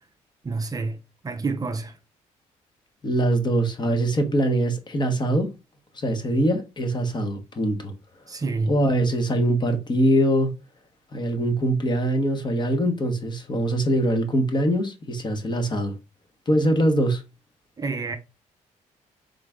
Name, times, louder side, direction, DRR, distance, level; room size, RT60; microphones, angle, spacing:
voice 1, 0.4-1.0 1.2-2.0 8.3-8.8 17.8-18.2, right 3 dB, 30° right, 0.6 m, -28 dB
voice 2, 3.0-5.5 5.9-7.9 8.7-10.5 11.1-15.9 16.5-17.2, right 1 dB, 35° left, 1.2 m, -23 dB
3.8 x 3.3 x 3.6 m
cardioid pair, 90°, 13 cm